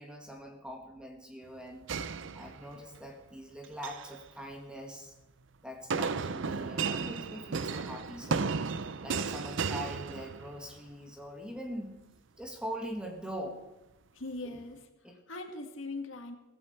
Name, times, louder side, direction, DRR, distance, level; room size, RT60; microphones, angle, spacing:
voice 1, 0.0-1.9 2.3-5.1 5.6-8.6 9.0-12.0 12.4-13.6 14.4-14.6 15.0-15.2, equal, 5° right, 2 dB, 2.1 m, -42 dB
sound 1, 1.9-3.0 3.6-4.1 5.9-10.7, right 5 dB, 60° right, 0.6 m, -34 dB
voice 2, 14.1-16.3, left 2 dB, 70° left, 5 dB, 1.9 m, -41 dB
16.5 x 15.5 x 4.4 m, 0.99 s
head